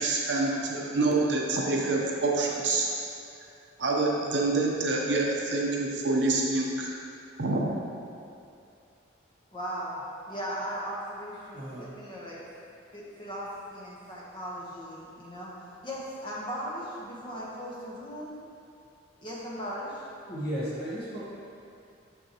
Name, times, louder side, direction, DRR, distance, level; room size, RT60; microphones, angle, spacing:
voice 1, 0.0-2.9 3.8-6.9 7.4-7.7, right 3 dB, 60° right, -1 dB, 0.7 m, -26 dB
voice 2, 9.5-12.4 12.9-15.5 15.8-18.4 19.2-20.1, equal, 25° left, -6 dB, 1.0 m, -38 dB
voice 3, 11.5-11.9 20.3-21.2, equal, 50° left, -7 dB, 1.5 m, -34 dB
6.5 x 5.6 x 2.9 m, 2.5 s
head